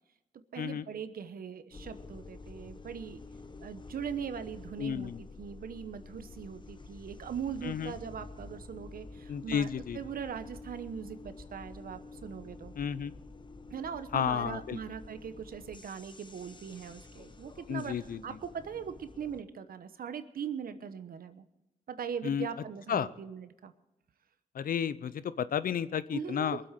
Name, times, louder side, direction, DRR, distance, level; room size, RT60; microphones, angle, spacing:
voice 1, 0.5-3.2 3.6-12.7 13.7-21.4 21.9-23.7 26.1-26.6, right 7 dB, 75° right, 11 dB, 1.1 m, -40 dB
sound 1, 1.7-19.4, left 3 dB, 30° left, 1.1 m, -49 dB
voice 2, 4.8-5.2 7.6-7.9 9.3-10.0 12.8-13.1 14.1-14.8 17.7-18.2 22.2-22.5 22.9-23.1 24.5-26.6, left 8 dB, 70° left, 16 dB, 0.7 m, -32 dB
22.0 x 7.9 x 6.6 m, 0.95 s
cardioid pair, 65°, 15 cm